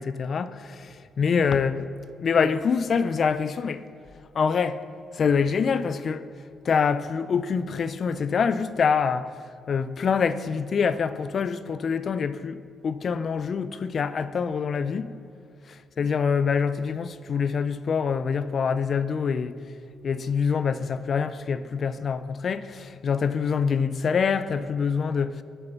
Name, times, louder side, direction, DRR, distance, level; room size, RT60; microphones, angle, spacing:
voice 1, 0.0-1.9 2.2-3.9 4.3-4.8 5.1-6.3 6.6-9.3 9.7-15.1 15.7-19.6 20.0-25.4, left 6 dB, 45° left, 0.4 m, -25 dB
7.9 x 5.6 x 7.0 m
cardioid pair, 115°, 0 cm